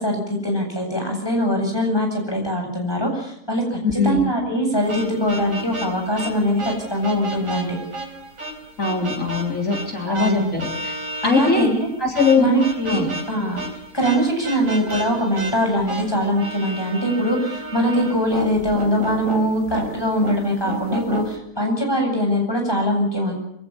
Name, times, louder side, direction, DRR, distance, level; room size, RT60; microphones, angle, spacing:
voice 1, 0.0-7.8 10.1-10.5 11.2-11.9 12.4-13.0 13.3-13.6 13.9-23.3, equal, 15° left, 2 dB, 8.0 m, -22 dB
voice 2, 3.8-4.3 8.8-11.0 11.2-11.7 12.0-12.5 12.9-13.1, left 4 dB, 70° left, 1 dB, 3.9 m, -21 dB
sound 1, 4.9-21.4, right 1 dB, 70° right, 4.0 m, -33 dB
25.0 x 17.0 x 9.9 m, 0.75 s
omnidirectional pair, 1.4 m